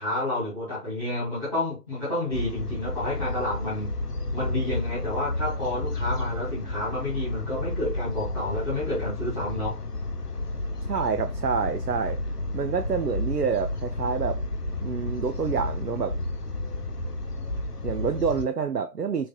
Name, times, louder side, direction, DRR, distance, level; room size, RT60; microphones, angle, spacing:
voice 1, 0.0-3.9 4.3-9.8, left 1 dB, 5° right, 1.3 m, -30 dB
sound 1, 2.3-18.5, left 2 dB, 80° left, 1.0 m, -31 dB
voice 2, 10.8-12.2 12.5-14.4 14.8-16.2 17.8-19.3, right 6 dB, 80° right, 0.7 m, -27 dB
6.8 x 3.2 x 2.2 m
figure-of-eight pair, 160°, 47 cm